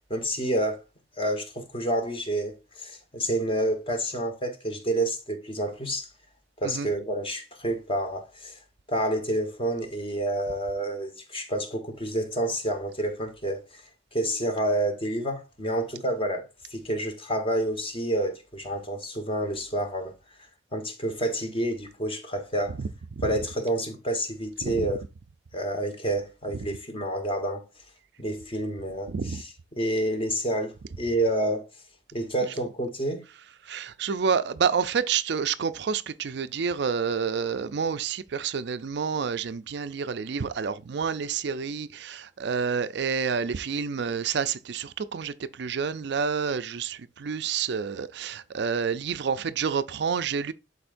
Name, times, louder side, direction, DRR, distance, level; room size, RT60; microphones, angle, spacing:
voice 1, 0.1-0.8 1.2-6.1 6.6-8.6 8.9-13.8 14.1-16.4 16.7-20.1 20.7-22.8 23.2-25.0 25.5-27.6 28.2-31.6 32.1-33.2, right 1 dB, 30° left, 1.4 m, -29 dB
voice 2, 29.1-29.4 33.7-50.5, right 6 dB, 65° right, 0.5 m, -29 dB
11.5 x 4.2 x 2.5 m
head